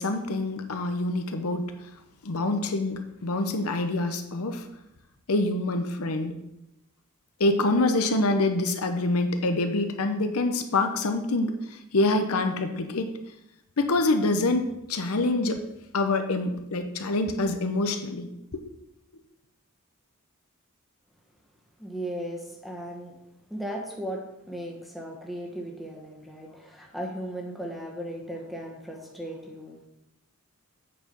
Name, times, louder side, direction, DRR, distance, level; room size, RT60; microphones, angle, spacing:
voice 1, 0.0-1.7 2.2-4.7 5.3-6.4 7.4-13.1 13.8-15.6 15.9-18.6, left 2 dB, 75° left, 7 dB, 0.8 m, -26 dB
voice 2, 21.8-23.1 23.5-29.9, equal, ahead, 0 dB, 1.3 m, -36 dB
8.5 x 4.8 x 5.3 m, 0.87 s
head